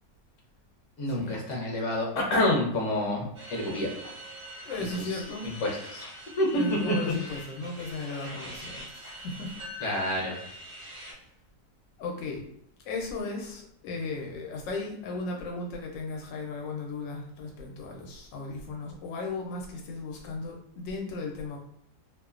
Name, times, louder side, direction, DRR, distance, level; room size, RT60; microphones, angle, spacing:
voice 1, 1.0-4.1 5.0-6.0 6.4-6.9 9.8-10.4, left 1 dB, 55° left, -2 dB, 0.9 m, -28 dB
sound 1, 3.3-11.1, equal, 45° right, 0.4 m, -43 dB
voice 2, 4.6-5.5 6.5-9.7 10.9-11.2 12.0-12.5 12.8-21.6, left 3 dB, 80° left, 1 dB, 1.2 m, -36 dB
3.0 x 2.1 x 2.3 m, 0.70 s
omnidirectional pair, 2.0 m